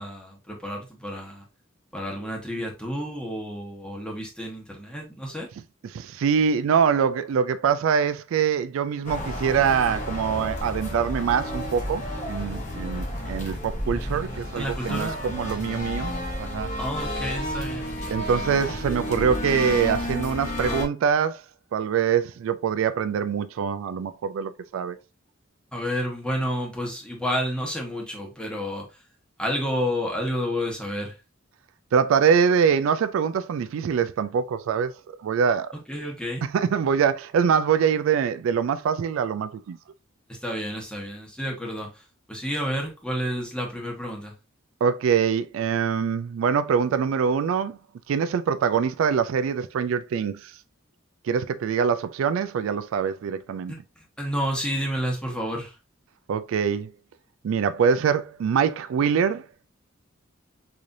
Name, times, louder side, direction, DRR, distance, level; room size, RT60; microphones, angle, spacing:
voice 1, 0.0-1.4 1.9-5.5 14.6-15.2 16.8-17.9 25.7-28.8 29.4-31.1 35.9-36.4 40.3-41.9 42.3-44.3 53.7-53.8 54.2-55.7, equal, 5° left, 1.0 m, -30 dB
voice 2, 5.8-12.0 12.3-16.1 16.4-16.7 18.1-21.4 21.7-25.0 31.9-34.9 35.2-35.7 36.4-39.8 44.8-47.8 48.1-50.5 51.3-53.7 56.3-56.9 57.4-59.4, right 7 dB, 75° right, 0.3 m, -24 dB
sound 1, 9.0-20.8, left 1 dB, 40° left, 1.0 m, -31 dB
3.8 x 3.2 x 2.6 m
head